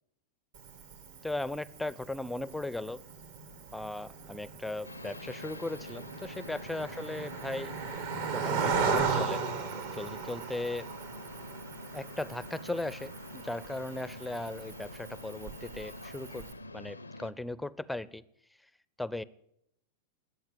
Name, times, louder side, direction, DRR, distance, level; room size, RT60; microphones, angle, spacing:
Cricket, 0.5-16.5, right 5 dB, 60° right, 2.0 m, -37 dB
voice 1, 1.2-3.0 3.7-7.7 8.3-9.4 9.9-10.9 11.9-16.4 16.7-18.2 19.0-19.2, left 2 dB, 5° left, 19 dB, 0.5 m, -37 dB
sound 1, 4.8-17.3, left 2 dB, 85° left, 0.6 m, -46 dB
20.5 x 8.3 x 7.7 m, 0.76 s
figure-of-eight pair, 90°, 0 cm